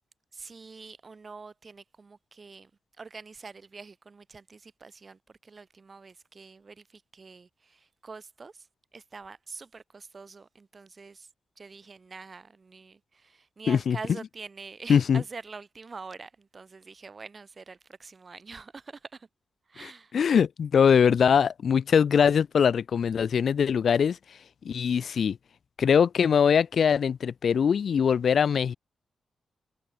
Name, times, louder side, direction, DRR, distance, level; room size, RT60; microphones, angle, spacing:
voice 1, 0.3-11.3 11.6-19.3 19.7-20.2, right 4 dB, 45° right, 2.9 m, -45 dB
voice 2, 14.9-15.2 20.1-24.2 24.6-25.4 25.8-28.7, left 7 dB, 70° left, 0.3 m, -22 dB
cardioid pair, 65°, 0 cm